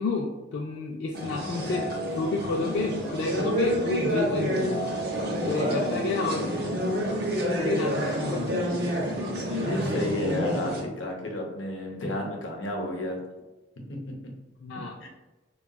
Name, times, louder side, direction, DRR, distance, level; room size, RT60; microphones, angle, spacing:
voice 1, 0.0-1.8 2.1-4.8 5.1-5.2 5.5-6.7 7.6-9.0 14.6-14.9, left 2 dB, 60° left, -1 dB, 0.3 m, -30 dB
sound 1, 1.1-10.8, equal, 55° right, 0.6 m, -29 dB
voice 2, 5.4-6.5 9.4-13.2 13.9-14.0 15.0-15.1, left 1 dB, 85° left, 0 dB, 0.7 m, -32 dB
3.8 x 2.2 x 2.2 m, 1.1 s
head